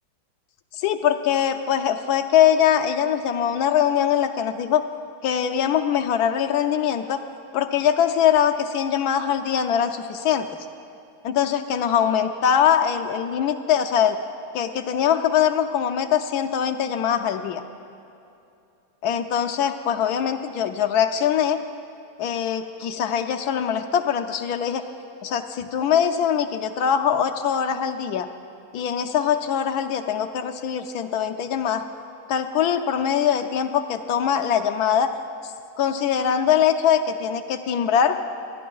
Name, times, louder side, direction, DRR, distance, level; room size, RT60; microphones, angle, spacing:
voice 1, 0.8-4.9 5.2-7.2 7.5-10.5 11.2-14.2 14.5-17.6 19.0-21.6 22.2-24.8 25.2-28.3 28.7-31.8 32.3-35.1 35.8-38.2, left 8 dB, 70° left, 7 dB, 1.0 m, -22 dB
26.0 x 11.0 x 2.3 m, 2.7 s
omnidirectional pair, 1.9 m